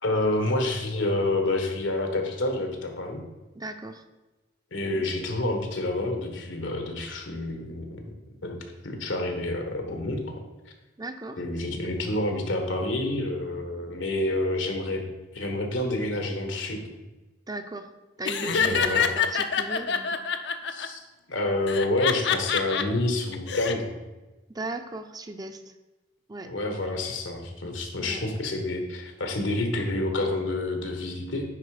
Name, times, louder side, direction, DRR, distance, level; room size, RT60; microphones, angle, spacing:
voice 1, 0.0-3.2 4.7-8.1 8.4-8.6 8.8-10.3 11.4-16.9 18.5-19.0 20.7-21.0 21.3-23.9 26.4-31.4, left 2 dB, 90° left, 4 dB, 1.4 m, -28 dB
voice 2, 3.5-4.0 4.9-5.0 11.0-11.4 17.5-17.9 18.2-20.2 24.5-25.6 26.3-26.5 28.0-28.2, right 2 dB, 20° right, 7 dB, 0.5 m, -36 dB
Laughter, 18.2-20.9 21.7-22.8 23.3-23.7, left 7 dB, 65° left, 0.6 m, -26 dB
9.6 x 4.3 x 5.0 m, 1.1 s
head